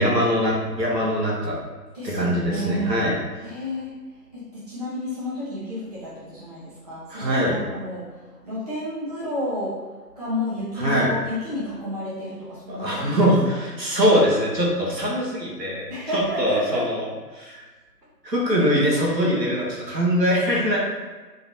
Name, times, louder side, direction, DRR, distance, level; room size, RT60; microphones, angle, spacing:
voice 1, 0.0-1.6 2.0-3.2 7.1-7.6 10.8-11.1 12.7-15.9 16.4-17.1 17.3-17.6 18.2-20.8, equal, 90° right, -4 dB, 1.4 m, -22 dB
voice 2, 1.9-3.0 3.4-3.9 4.3-9.8 10.1-13.3 15.9-16.9, left 1 dB, 25° right, -12 dB, 1.0 m, -31 dB
3.9 x 3.0 x 2.8 m, 1.3 s
figure-of-eight pair, 155°, 49 cm